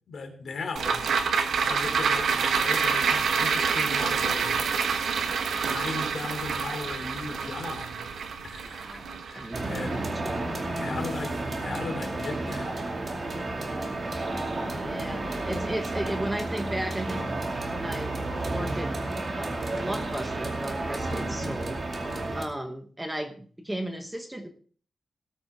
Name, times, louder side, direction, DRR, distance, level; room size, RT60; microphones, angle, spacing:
voice 1, 0.1-0.9 1.6-4.5 5.6-8.0 8.4-9.0 9.3-10.0 10.8-12.7, left 3 dB, 55° left, 5 dB, 3.1 m, -37 dB
sound 1, 0.8-11.3 11.6-11.7, right 6 dB, 75° right, 1.4 m, -27 dB
voice 2, 8.6-10.5 14.8-17.2 17.7-18.2 18.4-18.9 19.4-21.8 22.3-24.5, right 1 dB, 10° right, 6 dB, 1.1 m, -35 dB
sound 2, 9.5-22.4, right 2 dB, 30° right, 2.3 m, -31 dB
19.0 x 8.7 x 3.6 m, 0.43 s
wide cardioid pair, 175°, 0 cm